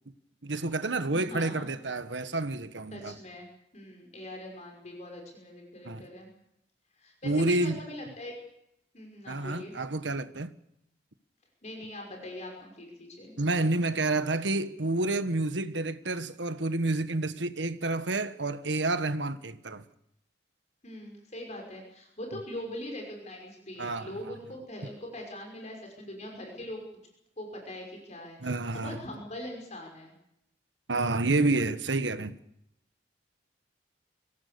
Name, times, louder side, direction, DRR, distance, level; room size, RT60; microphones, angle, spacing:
voice 1, 0.4-3.1 5.8-6.1 7.2-7.8 9.3-10.5 13.4-19.8 23.8-24.1 28.4-29.0 30.9-32.3, right 2 dB, 90° right, 1.4 m, -29 dB
voice 2, 1.1-1.7 2.9-3.5 3.7-6.3 7.0-8.3 8.9-9.7 11.6-13.3 20.8-26.8 27.4-30.1, left 1 dB, 40° left, 5.8 m, -42 dB
25.5 x 17.5 x 7.0 m
head